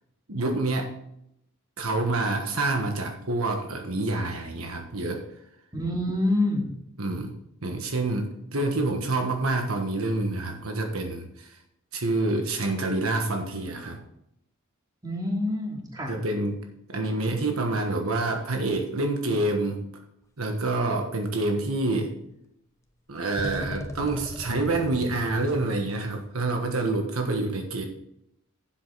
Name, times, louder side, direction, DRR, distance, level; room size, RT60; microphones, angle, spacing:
voice 1, 0.3-0.9 1.8-5.2 7.0-7.3 7.6-11.6 11.9-14.0 16.1-16.6 16.9-19.8 20.4-22.1 23.1-27.9, right 2 dB, 70° right, 3 dB, 1.4 m, -27 dB
voice 2, 5.7-6.7 15.0-16.1, left 1 dB, 20° right, -2 dB, 2.7 m, -26 dB
sound 1, 21.3-21.4 23.4-25.9, left 1 dB, 15° left, 0.9 m, -37 dB
11.0 x 7.8 x 4.0 m, 0.78 s
head